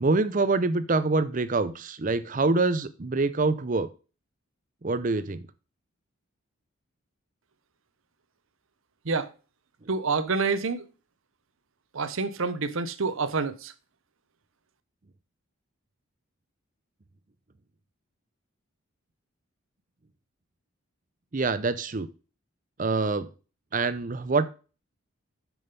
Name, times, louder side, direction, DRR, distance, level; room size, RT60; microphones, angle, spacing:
voice 1, 0.0-3.9 4.8-5.5 21.3-22.1 22.8-23.3 23.7-24.5, right 3 dB, 40° right, 0.6 m, -25 dB
voice 2, 9.9-10.8 11.9-13.7, right 4 dB, 70° right, 0.8 m, -27 dB
6.8 x 6.2 x 5.2 m
head